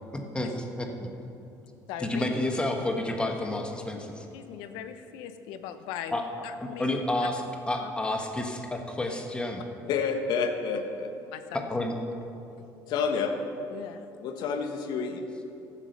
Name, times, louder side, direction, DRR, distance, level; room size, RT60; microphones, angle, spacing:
voice 1, 0.1-1.1 2.0-4.1 6.1-6.2 6.6-9.6 11.5-11.9, left 1 dB, 15° left, 3 dB, 1.4 m, -30 dB
voice 2, 1.9-2.3 4.3-6.9 7.2-7.3 7.8-7.9 11.3-11.7 12.5-12.6 13.7-14.0, left 9 dB, 85° left, 10 dB, 0.8 m, -40 dB
voice 3, 9.8-11.1 12.9-13.3 14.2-15.2, left 5 dB, 70° left, 5 dB, 1.3 m, -29 dB
14.0 x 7.4 x 6.7 m, 2.8 s
cardioid pair, 115°, 8 cm